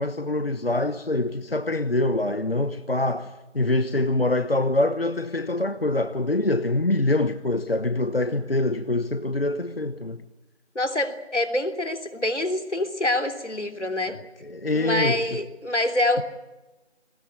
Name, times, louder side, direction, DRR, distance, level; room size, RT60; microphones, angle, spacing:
voice 1, 0.0-10.2 14.1-15.4, left 2 dB, 55° left, 1.1 m, -25 dB
voice 2, 10.8-14.2 14.7-16.2, left 1 dB, 85° left, 3.4 m, -26 dB
20.0 x 19.5 x 9.8 m
figure-of-eight pair, 180°, 34 cm